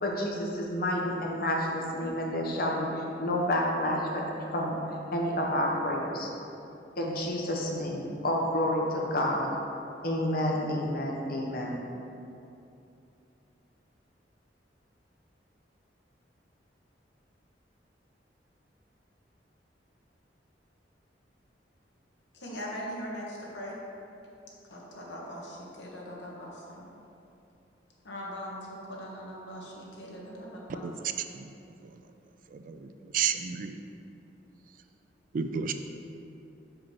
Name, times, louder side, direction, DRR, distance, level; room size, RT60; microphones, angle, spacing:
voice 1, 0.0-2.9 3.2-4.2 4.5-4.8 5.1-6.3 7.0-9.5 10.0-11.8, left 1 dB, 55° left, -1 dB, 1.0 m, -29 dB
voice 2, 22.3-23.7 24.7-26.9 28.0-30.9, equal, 80° left, -3 dB, 1.3 m, -40 dB
voice 3, 32.5-33.8 35.3-35.7, right 7 dB, 50° right, 8 dB, 0.3 m, -32 dB
5.6 x 5.0 x 4.6 m, 2.8 s
head